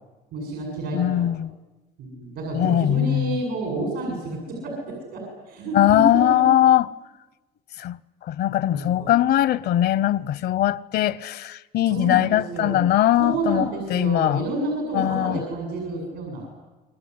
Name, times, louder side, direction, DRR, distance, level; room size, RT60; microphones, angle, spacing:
voice 1, 0.3-1.3 2.0-6.4 8.7-9.1 11.9-12.8 13.2-16.5, right 2 dB, 85° right, 7.6 m, -29 dB
voice 2, 0.9-1.5 2.5-3.4 5.7-6.9 7.8-14.4 14.9-15.4, left 12 dB, 70° left, 0.8 m, -21 dB
27.5 x 22.5 x 9.7 m
cardioid pair, 110°, 17 cm